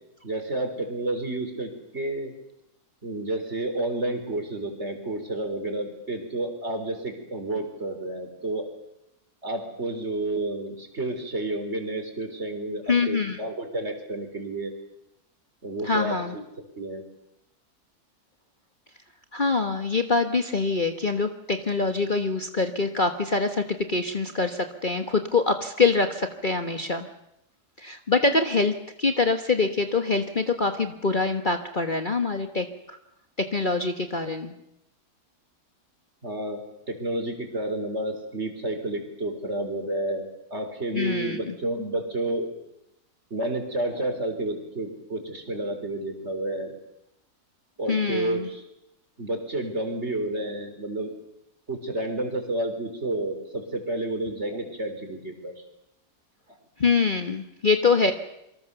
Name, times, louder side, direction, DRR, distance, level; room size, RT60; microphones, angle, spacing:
voice 1, 0.2-2.3 3.0-8.7 9.4-14.7 15.6-16.4 16.8-17.0 36.2-42.5 43.3-46.8 47.8-48.6 49.2-51.1 51.7-55.5, right 2 dB, 45° right, 5 dB, 4.5 m, -30 dB
voice 2, 12.9-13.4 15.8-16.3 19.3-27.1 27.8-33.0 33.5-34.5 40.9-41.5 47.9-48.5 56.8-58.1, left 4 dB, 35° left, 6 dB, 1.4 m, -24 dB
27.5 x 24.5 x 7.0 m, 0.84 s
omnidirectional pair, 1.7 m